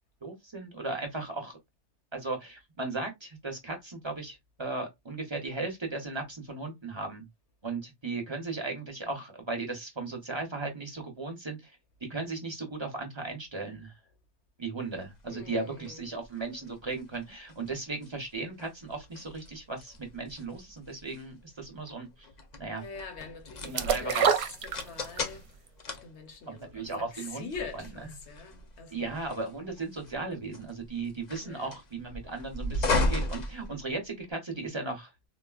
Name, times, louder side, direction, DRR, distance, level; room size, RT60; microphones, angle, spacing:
voice 1, 0.2-1.6 2.1-7.2 7.6-11.7 12.1-13.9 14.6-22.1 22.6-22.8 23.6-24.3 26.5-27.5 27.7-27.9 28.9-35.1, right 3 dB, 30° right, 0.6 m, -36 dB
sound 1, 14.9-34.3, left 2 dB, 45° left, 0.6 m, -37 dB
voice 2, 15.3-16.1 22.8-25.5 25.9-29.2 31.4-31.8, left 5 dB, 70° left, 1.0 m, -44 dB
sound 2, 23.8-25.3 25.7-25.8, right 7 dB, 70° right, 0.8 m, -26 dB
3.7 x 2.1 x 2.3 m
omnidirectional pair, 1.2 m